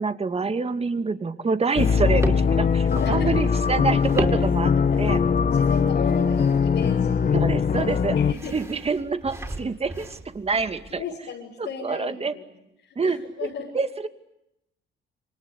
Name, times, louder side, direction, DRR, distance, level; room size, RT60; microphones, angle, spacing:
voice 1, 0.0-4.7 5.0-5.2 7.3-8.2 8.5-11.0 11.6-12.4 13.0-13.2 13.7-14.1, right 4 dB, 30° right, 9 dB, 2.4 m, -26 dB
sound 1, 1.7-11.0, right 2 dB, 15° right, 5.1 m, -36 dB
sound 2, 1.8-8.3, left 6 dB, 45° left, 1.3 m, -21 dB
voice 2, 2.9-3.3 4.7-5.0 5.5-7.4 7.8-8.6 11.0-12.5 13.0-13.7, left 6 dB, 90° left, -2 dB, 6.3 m, -35 dB
28.5 x 24.5 x 8.4 m, 0.86 s
cardioid pair, 90°, 20 cm